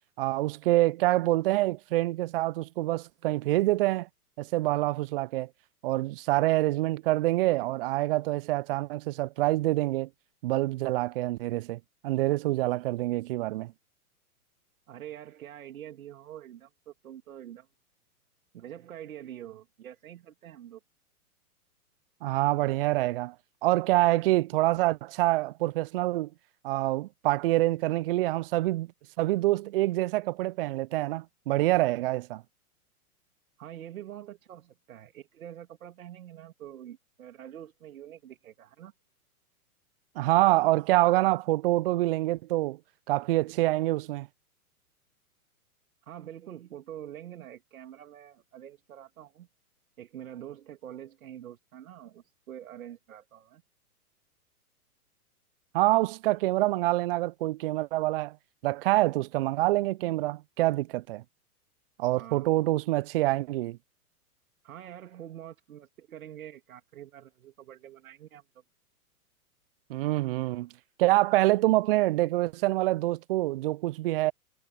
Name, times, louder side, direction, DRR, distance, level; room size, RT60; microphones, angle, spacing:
voice 1, 0.2-4.1 4.4-5.5 5.8-10.1 10.4-13.7 22.2-23.3 23.6-26.3 26.6-28.9 29.2-32.4 40.2-42.8 43.1-44.3 55.7-58.3 58.6-61.2 62.0-63.8 69.9-70.7 71.0-74.3, right 18 dB, 40° right, 0.5 m, -26 dB
voice 2, 14.9-17.7 18.5-20.8 33.6-38.9 46.0-49.5 50.0-53.6 62.1-62.5 64.6-68.4, right 11 dB, 65° right, 2.8 m, -45 dB
figure-of-eight pair, 115°, 45 cm